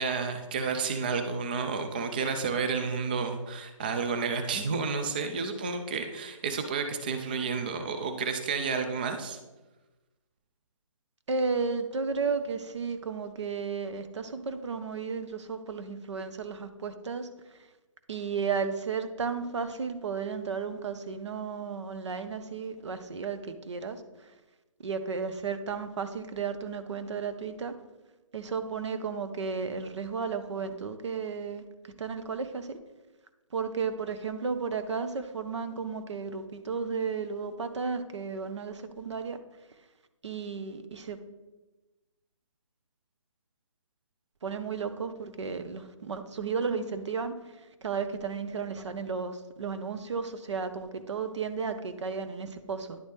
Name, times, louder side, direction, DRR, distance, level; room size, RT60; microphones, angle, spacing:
voice 1, 0.0-9.4, right 5 dB, 15° right, 7 dB, 0.3 m, -31 dB
voice 2, 11.3-17.3 18.1-23.4 23.7-24.0 24.8-27.7 28.3-31.6 32.0-32.7 33.5-39.4 40.2-41.2 44.4-47.3 47.8-53.0, right 5 dB, 60° right, 9 dB, 0.8 m, -33 dB
10.5 x 4.0 x 3.4 m, 1.1 s
figure-of-eight pair, 150°, 17 cm